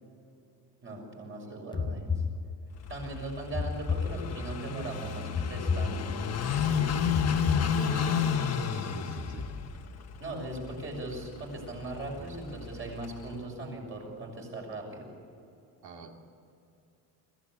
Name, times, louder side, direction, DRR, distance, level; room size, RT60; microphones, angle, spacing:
voice 1, 0.8-2.1 2.9-6.3 10.2-15.1, right 2 dB, 30° right, 0 dB, 6.4 m, -39 dB
voice 2, 1.4-2.0 6.7-9.4 15.8-16.1, right 5 dB, 75° right, 2 dB, 2.9 m, -44 dB
sound 1, 1.7-2.9 3.5-4.7 5.3-6.5 7.1-8.3, left 5 dB, 10° left, 0.7 m, -32 dB
Car passing by / Idling, 2.8-13.4, left 7 dB, 40° left, 1.3 m, -32 dB
25.5 x 16.5 x 9.7 m, 2.7 s
cardioid pair, 180°, 38 cm